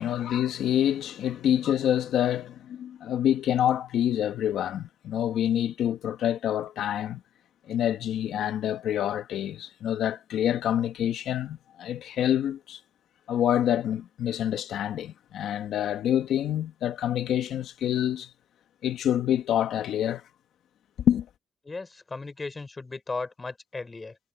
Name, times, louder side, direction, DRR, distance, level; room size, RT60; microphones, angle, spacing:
voice 1, 0.0-7.2 7.7-12.8 13.3-18.3 18.8-20.2 21.1-21.3, left 10 dB, 75° left, 1.8 m, -27 dB
voice 2, 21.6-24.2, left 3 dB, 30° left, 5.3 m, -36 dB
cardioid pair, 70°, 0 cm